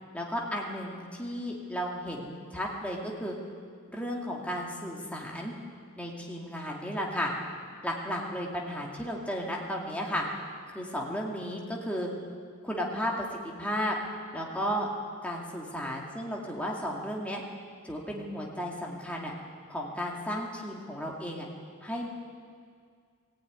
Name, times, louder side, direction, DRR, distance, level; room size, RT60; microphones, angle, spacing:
voice 1, 0.1-3.4 3.9-5.5 6.0-7.3 7.8-10.3 10.7-12.1 12.6-14.0 14.3-14.9 15.2-17.4 17.8-19.3 19.7-21.5 21.8-22.1, equal, 5° left, -2 dB, 2.3 m, -34 dB
20.0 x 15.5 x 9.5 m, 2.1 s
head